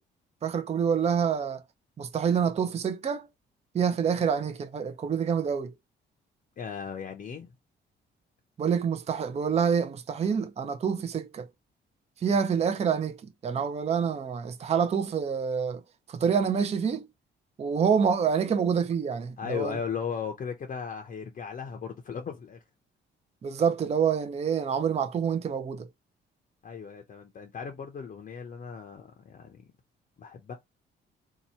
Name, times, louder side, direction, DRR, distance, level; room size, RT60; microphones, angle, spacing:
voice 1, 0.4-1.6 2.0-3.3 3.7-5.8 8.6-11.5 12.2-13.2 13.4-15.8 16.1-17.1 17.6-19.8 23.4-25.9, right 7 dB, 30° right, 0.5 m, -27 dB
voice 2, 6.6-7.5 19.4-22.6 26.6-29.6 30.2-30.5, left 6 dB, 45° left, 0.6 m, -36 dB
2.8 x 2.2 x 4.1 m
cardioid pair, 90°, 20 cm